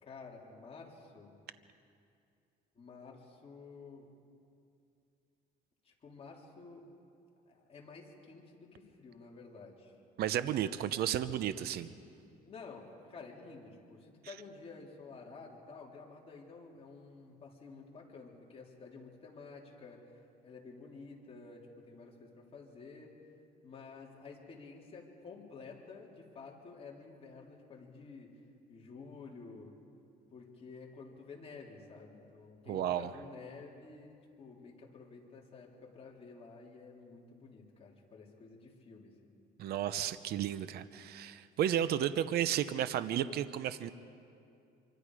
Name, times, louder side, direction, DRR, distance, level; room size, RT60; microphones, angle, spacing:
voice 1, 0.0-1.4 2.8-4.1 5.8-6.9 7.5-9.9 12.4-23.1 23.6-28.4 28.7-29.8 30.3-39.1, left 4 dB, 35° left, -2 dB, 3.7 m, -51 dB
voice 2, 10.2-11.9 32.7-33.1 39.6-43.9, right 10 dB, 70° right, 13 dB, 0.8 m, -33 dB
26.5 x 25.0 x 5.0 m, 2.5 s
cardioid pair, 110°, 17 cm